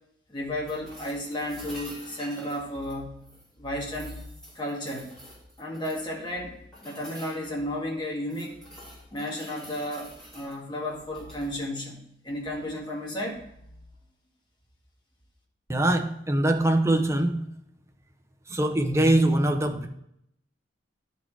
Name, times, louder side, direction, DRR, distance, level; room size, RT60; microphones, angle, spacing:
voice 1, 0.3-3.2 3.6-4.2 4.6-5.1 5.6-8.6 9.1-13.4, left 1 dB, 25° left, 1.8 m, -33 dB
sound 1, 0.7-3.5 3.9-6.1 6.7-7.5 8.0-10.6 11.1-11.5 13.5-13.6, equal, 5° left, 3.2 m, -48 dB
voice 2, 15.7-17.5 18.5-19.9, right 1 dB, 15° right, 0.7 m, -23 dB
11.0 x 4.3 x 4.6 m
head